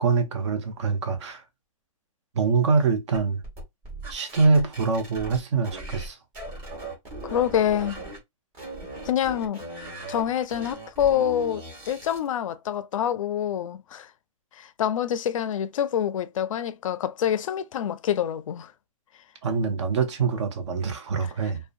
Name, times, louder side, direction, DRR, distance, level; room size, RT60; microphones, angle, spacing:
voice 1, 0.0-1.4 2.3-3.4 4.1-6.2 19.4-21.6, right 4 dB, 55° right, 0.7 m, -24 dB
sound 1, 3.1-6.1 6.3-8.2 8.5-12.3, right 2 dB, 20° right, 1.1 m, -39 dB
voice 2, 7.2-8.0 9.1-9.6 10.1-14.1 14.5-18.7 21.2-21.3, left 10 dB, 65° left, 0.4 m, -26 dB
2.6 x 2.1 x 2.4 m
hypercardioid pair, 165°, 18 cm